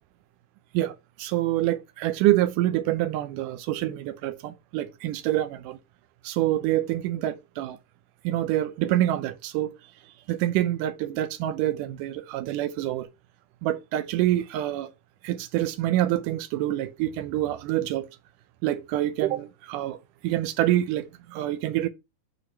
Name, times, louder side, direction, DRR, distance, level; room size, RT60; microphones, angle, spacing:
voice 1, 0.7-5.8 6.2-7.8 8.2-9.7 10.3-13.1 13.6-14.9 15.2-18.1 18.6-20.0 20.2-21.9, right 14 dB, 90° right, 2.2 m, -26 dB
6.8 x 4.8 x 5.5 m
omnidirectional pair, 3.6 m